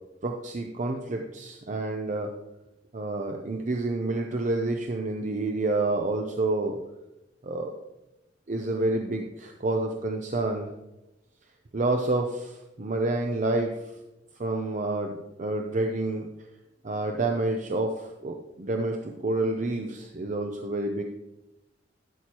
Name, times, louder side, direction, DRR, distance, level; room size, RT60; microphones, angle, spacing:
voice 1, 0.2-2.3 2.9-6.8 7.4-7.7 8.5-10.7 11.7-13.8 14.4-16.3 16.8-21.0, right 2 dB, 45° right, 3 dB, 0.6 m, -28 dB
12.5 x 6.4 x 2.9 m, 0.94 s
head